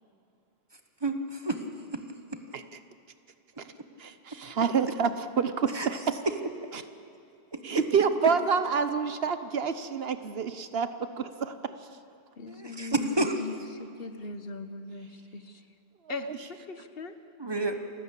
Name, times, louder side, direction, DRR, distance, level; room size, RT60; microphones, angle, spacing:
voice 1, 1.0-1.6 1.9-2.0 2.3-2.4 5.7-5.9 6.2-6.3 7.5-7.6 12.5-13.4 17.4-17.8, right 2 dB, 25° right, 1.3 m, -29 dB
voice 2, 4.0-6.2 6.7-6.8 7.6-10.9 11.2-11.7 16.1-16.4, right 6 dB, 70° right, 1.2 m, -28 dB
voice 3, 12.4-15.6 16.1-16.4 16.7-17.2, left 3 dB, 65° left, 1.2 m, -39 dB
28.0 x 13.0 x 8.4 m
omnidirectional pair, 1.1 m